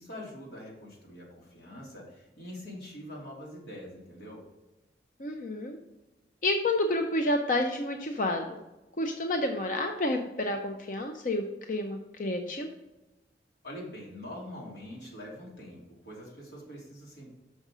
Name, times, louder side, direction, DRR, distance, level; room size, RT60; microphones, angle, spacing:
voice 1, 0.0-4.4 13.6-17.3, left 1 dB, 85° left, -3 dB, 2.9 m, -44 dB
voice 2, 5.2-5.8 6.4-8.6 9.0-12.7, left 1 dB, 50° left, 4 dB, 0.6 m, -29 dB
6.4 x 5.2 x 6.1 m, 1.0 s
head